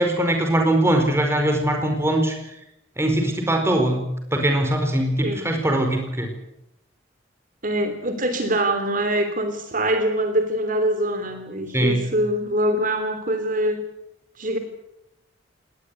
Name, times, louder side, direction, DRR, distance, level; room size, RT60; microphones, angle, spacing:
voice 1, 0.0-2.4 3.0-6.3 11.7-12.1, right 1 dB, 15° right, 4 dB, 4.7 m, -21 dB
voice 2, 7.6-13.8 14.4-14.6, right 1 dB, 45° right, 7 dB, 3.3 m, -24 dB
19.5 x 19.5 x 9.9 m, 0.83 s
head